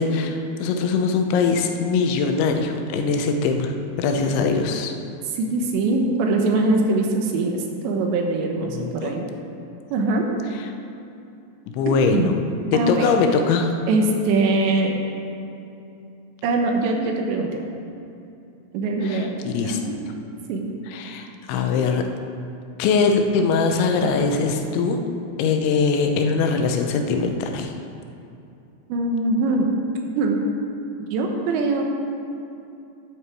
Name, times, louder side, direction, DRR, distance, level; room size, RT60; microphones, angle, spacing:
voice 1, 0.0-4.9 8.6-9.1 11.7-12.4 12.7-13.7 19.0-19.8 20.9-22.1 22.8-25.0 25.4-27.7, left 4 dB, 85° left, 5 dB, 3.2 m, -22 dB
voice 2, 5.3-9.3 9.9-10.3 11.9-12.3 12.7-13.1 13.9-14.9 16.4-17.6 18.7-19.3 19.6-20.0 20.5-20.7 28.9-29.7 30.1-30.4 31.1-31.8, right 2 dB, 80° right, 2 dB, 3.2 m, -22 dB
11.5 x 11.0 x 4.7 m, 2.7 s
omnidirectional pair, 5.2 m